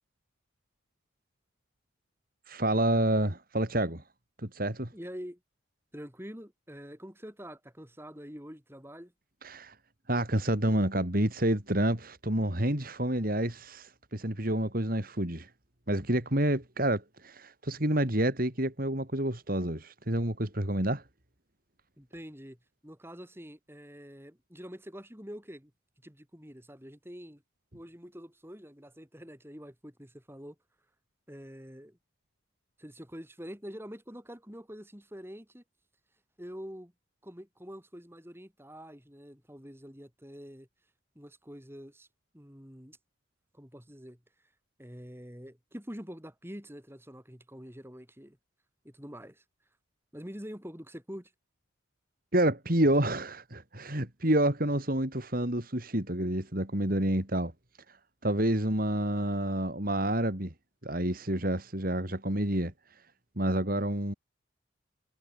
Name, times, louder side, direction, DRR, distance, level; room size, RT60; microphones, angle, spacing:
voice 1, 2.5-4.0 4.4-4.9 9.4-9.7 10.1-15.5 15.9-21.0 52.3-57.5 58.2-60.5 60.8-62.7 63.4-64.1, right 1 dB, 45° right, 3.6 m, -28 dB
voice 2, 4.9-5.4 5.9-9.1 22.0-22.6 22.8-25.7 26.0-27.4 27.7-30.6 31.3-32.0 32.8-35.6 36.4-36.9 37.2-40.7 41.2-42.1 42.3-43.0 43.5-44.2 44.8-48.4 48.8-49.4 50.1-51.3, equal, 10° right, 7.6 m, -46 dB
head